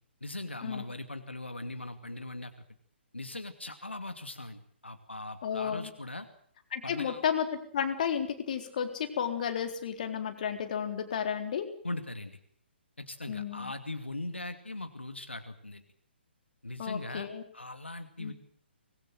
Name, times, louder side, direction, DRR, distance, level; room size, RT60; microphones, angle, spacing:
voice 1, 0.2-2.5 3.1-6.3 6.8-7.2 11.8-12.4 13.0-15.8 16.6-17.3 17.5-18.3, left 2 dB, 80° left, 8 dB, 2.5 m, -40 dB
voice 2, 5.4-5.9 6.7-11.7 13.3-13.7 16.8-17.4 18.2-18.3, left 8 dB, 40° left, 6 dB, 3.9 m, -32 dB
25.0 x 21.0 x 7.8 m, 0.63 s
figure-of-eight pair, 130°, 6 cm